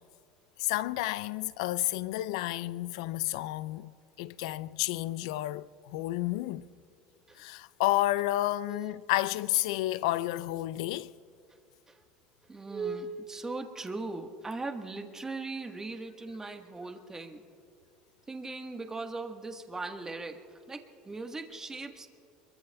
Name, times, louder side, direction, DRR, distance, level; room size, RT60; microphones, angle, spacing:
voice 1, 0.6-3.9 4.2-6.7 7.4-11.1, left 16 dB, 80° left, 0.4 m, -31 dB
voice 2, 12.5-17.4 18.3-22.1, right 3 dB, 15° right, 1.4 m, -39 dB
25.0 x 23.0 x 2.3 m
supercardioid pair, 105°, 3 cm